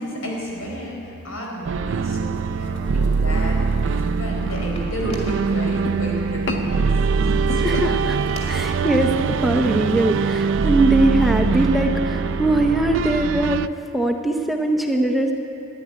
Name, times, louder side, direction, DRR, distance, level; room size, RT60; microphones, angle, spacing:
voice 1, 0.0-8.0 8.4-8.6, equal, 75° left, -1 dB, 4.4 m, -32 dB
sound 1, 1.6-13.7, right 5 dB, 60° right, 0.4 m, -22 dB
sound 2, 2.0-8.6, left 2 dB, 55° left, 1.3 m, -36 dB
sound 3, 3.8-8.6, left 1 dB, 30° left, 2.3 m, -44 dB
voice 2, 7.6-8.2 8.5-13.7 13.9-15.3, right 2 dB, ahead, 3 dB, 0.6 m, -21 dB
13.5 x 11.0 x 9.8 m, 2.7 s
head